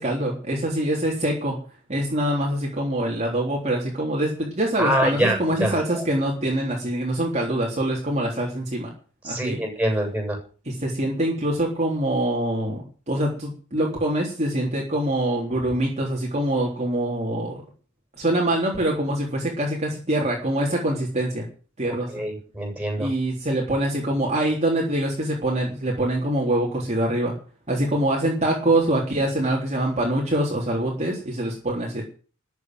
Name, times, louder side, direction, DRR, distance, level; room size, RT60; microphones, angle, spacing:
voice 1, 0.0-1.6 1.9-8.9 9.2-9.6 10.7-17.6 18.2-21.5 21.8-22.1 23.0-27.3 27.7-32.0, right 1 dB, 35° right, -2 dB, 3.7 m, -24 dB
voice 2, 4.8-6.0 9.2-10.4 22.1-23.1, right 1 dB, 5° right, 2 dB, 7.8 m, -25 dB
14.0 x 8.1 x 9.5 m, 0.39 s
head